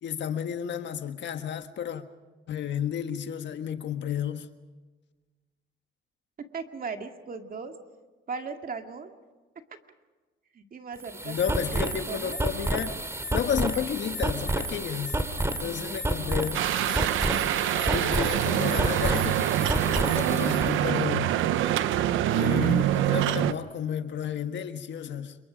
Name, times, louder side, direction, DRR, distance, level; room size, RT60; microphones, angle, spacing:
voice 1, 0.0-2.0 2.5-4.5 11.2-12.9 13.3-15.2 15.6-16.7 17.9-19.5 19.9-21.3 22.3-25.4, left 8 dB, 65° left, 1.5 m, -32 dB
voice 2, 6.4-7.8 8.3-9.1 10.5-12.4 15.5-16.4, right 5 dB, 45° right, 2.2 m, -38 dB
sound 1, 11.0-20.7, right 1 dB, 15° right, 2.4 m, -30 dB
sound 2, 16.5-23.5, right 12 dB, 85° right, 0.8 m, -25 dB
28.0 x 23.0 x 5.1 m
cardioid pair, 90°, 20 cm